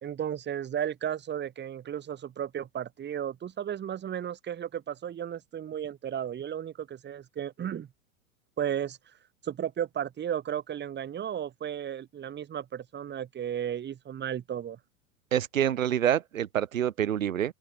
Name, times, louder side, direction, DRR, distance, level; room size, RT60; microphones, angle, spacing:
voice 1, 0.0-7.9 8.6-9.0 9.4-14.8, right 9 dB, 25° right, 3.0 m, -34 dB
voice 2, 15.3-17.5, right 10 dB, 85° right, 2.6 m, -27 dB
open air
hypercardioid pair, 110°, 39 cm